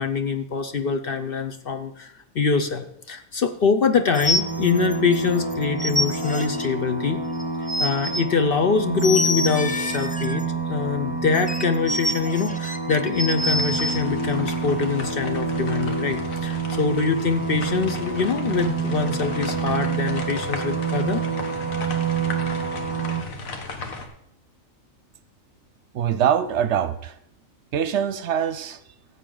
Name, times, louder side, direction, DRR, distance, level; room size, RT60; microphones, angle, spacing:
voice 1, 0.0-7.2 7.8-21.2, left 5 dB, 55° left, 7 dB, 0.7 m, -24 dB
sound 1, 4.1-5.2 5.5-6.7 7.4-8.2 9.0-10.4 11.3-14.0, left 1 dB, 10° left, 0.3 m, -26 dB
sound 2, 4.2-23.2, right 4 dB, 25° right, 0.7 m, -28 dB
sound 3, 13.4-24.1, left 3 dB, 85° left, 1.7 m, -36 dB
voice 2, 25.9-27.1 27.7-28.8, right 9 dB, 65° right, 13 dB, 0.8 m, -23 dB
14.5 x 8.2 x 3.8 m, 0.75 s
omnidirectional pair, 1.4 m